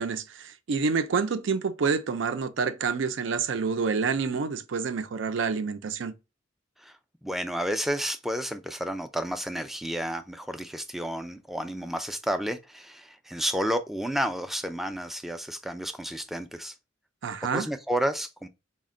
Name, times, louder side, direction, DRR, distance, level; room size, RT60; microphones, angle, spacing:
voice 1, 0.0-6.1 17.2-17.7, right 5 dB, 70° right, 0.4 m, -28 dB
voice 2, 6.8-16.7 17.5-18.5, equal, ahead, 0.3 m, -31 dB
4.1 x 2.1 x 3.7 m
head